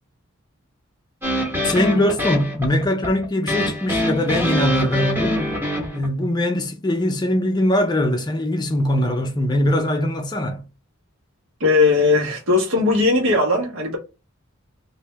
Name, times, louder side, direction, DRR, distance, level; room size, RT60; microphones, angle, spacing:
sound 1, 1.2-6.1, equal, 10° right, 1.0 m, -24 dB
voice 1, 1.6-5.4 5.9-10.7, left 1 dB, 20° left, 0.4 m, -21 dB
voice 2, 11.6-14.0, left 3 dB, 80° right, 1.2 m, -18 dB
3.2 x 2.6 x 3.3 m
head